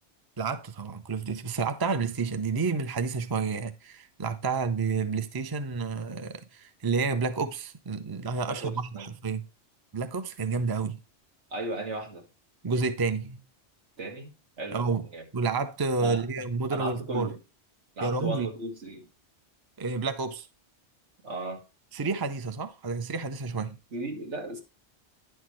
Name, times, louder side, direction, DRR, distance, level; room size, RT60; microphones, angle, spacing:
voice 1, 0.4-9.5 9.9-11.0 12.6-13.4 14.7-15.0 15.3-17.4 18.0-18.5 19.8-20.5 21.9-23.8, right 4 dB, 25° right, 0.6 m, -30 dB
voice 2, 8.5-9.1 11.5-12.3 14.0-15.2 16.0-16.2 16.7-17.4 18.0-19.1 21.2-21.6 23.9-24.6, right 2 dB, 80° right, 2.1 m, -36 dB
10.0 x 6.4 x 3.1 m
omnidirectional pair, 1.2 m